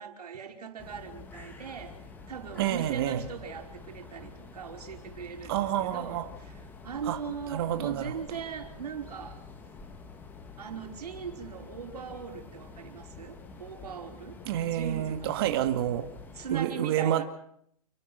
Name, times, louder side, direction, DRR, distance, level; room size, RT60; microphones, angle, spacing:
voice 1, 0.0-2.0 2.3-9.4 10.6-14.4 14.7-15.4 16.3-17.2, right 7 dB, 90° right, 3 dB, 5.3 m, -40 dB
sound 1, 0.8-16.6, left 4 dB, 10° left, 1.7 m, -48 dB
voice 2, 2.6-3.2 5.5-6.3 7.1-7.2 7.5-8.1 14.5-16.1 16.5-17.2, right 11 dB, 40° right, 8 dB, 2.2 m, -28 dB
30.0 x 11.0 x 9.4 m, 0.69 s
hypercardioid pair, 165°, 20 cm